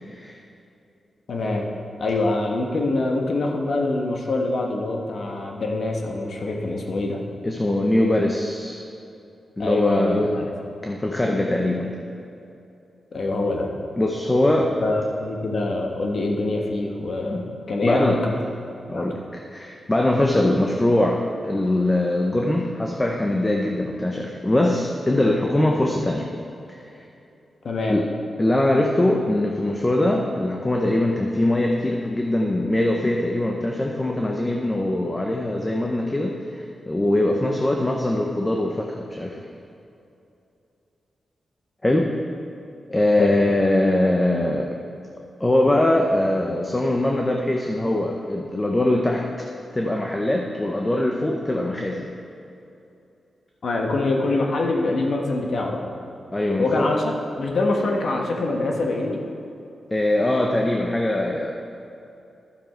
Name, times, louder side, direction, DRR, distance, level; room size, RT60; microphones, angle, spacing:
voice 1, 0.0-0.4 7.4-8.8 9.6-10.3 10.8-12.0 14.0-14.7 17.3-17.5 17.8-18.3 18.9-19.2 19.5-26.3 26.8-27.0 27.9-28.1 28.4-39.4 41.8-42.1 42.9-44.8 45.4-49.5 49.7-52.1 56.3-56.9 59.9-61.5, left 1 dB, 20° left, 1 dB, 0.8 m, -22 dB
voice 2, 1.3-1.7 2.0-7.2 9.6-10.5 13.1-13.7 14.8-17.4 17.7-18.3 18.9-19.1 27.6-28.0 43.2-43.4 53.6-55.8 56.6-59.2, left 2 dB, 65° left, 1 dB, 1.2 m, -24 dB
11.5 x 7.2 x 4.5 m, 2.8 s
cardioid pair, 90°, 0 cm